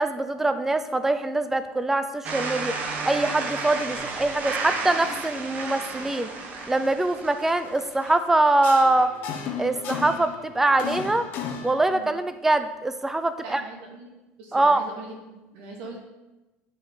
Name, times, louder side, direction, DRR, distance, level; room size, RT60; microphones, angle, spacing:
voice 1, 0.0-2.7 3.0-6.3 6.7-9.1 9.6-11.3 11.6-13.6 14.5-14.8, right 2 dB, 10° right, 10 dB, 0.5 m, -23 dB
sound 1, 2.2-8.0, right 4 dB, 40° right, 1.1 m, -32 dB
sound 2, 6.6-6.9 7.2-8.2 8.4-10.4 10.7-11.8, left 7 dB, 50° left, 1.1 m, -34 dB
voice 2, 13.4-14.1 14.4-16.0, right 3 dB, 90° right, -2 dB, 2.5 m, -41 dB
10.0 x 5.3 x 4.0 m, 1.1 s
cardioid pair, 145°, 4 cm